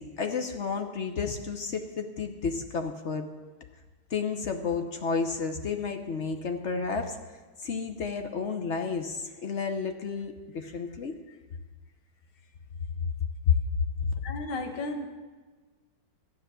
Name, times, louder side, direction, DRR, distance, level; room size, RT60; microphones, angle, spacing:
voice 1, 0.0-3.3 4.1-7.2 7.6-11.1 13.5-13.6 14.1-14.2, left 5 dB, 55° left, 6 dB, 0.8 m, -31 dB
voice 2, 14.2-15.1, left 2 dB, 80° left, 5 dB, 2.1 m, -34 dB
12.5 x 10.0 x 6.8 m, 1.3 s
omnidirectional pair, 2.2 m